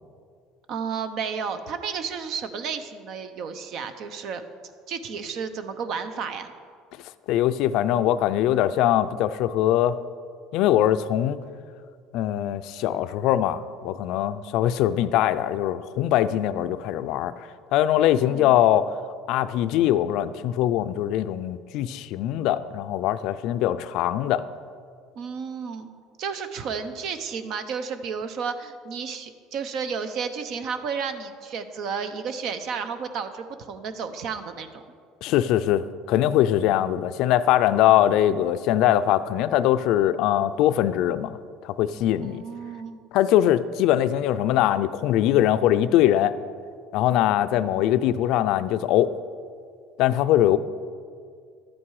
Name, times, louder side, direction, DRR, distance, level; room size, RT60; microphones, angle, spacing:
voice 1, 0.7-4.4 4.9-6.5 18.2-18.5 25.2-25.9 26.2-34.7 42.2-43.0, right 6 dB, 55° right, 10 dB, 0.8 m, -32 dB
voice 2, 7.3-10.0 10.5-11.4 12.1-18.9 19.3-24.4 35.2-41.4 41.6-42.4 43.1-46.3 46.9-49.1 50.0-50.6, left 12 dB, 65° left, 12 dB, 0.4 m, -22 dB
12.0 x 8.7 x 4.8 m, 2.1 s
cardioid pair, 130°, 0 cm